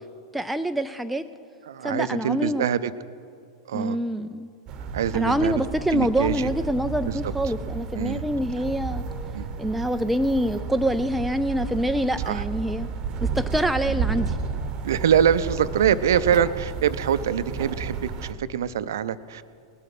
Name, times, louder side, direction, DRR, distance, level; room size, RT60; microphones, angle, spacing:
voice 1, 0.3-1.2 1.8-2.7 3.7-4.5 5.1-9.0 9.6-12.9 13.2-14.4, equal, ahead, 7 dB, 0.4 m, -25 dB
voice 2, 1.7-2.9 3.7-4.0 4.9-5.6 5.9-6.5 7.1-7.2 8.0-8.2 9.3-9.5 12.2-12.4 13.9-14.0 14.8-19.4, right 9 dB, 60° right, 14 dB, 0.5 m, -24 dB
sound 1, 4.7-18.3, right 5 dB, 35° right, 0.9 m, -32 dB
19.5 x 7.7 x 6.0 m, 2.3 s
figure-of-eight pair, 95°, 2 cm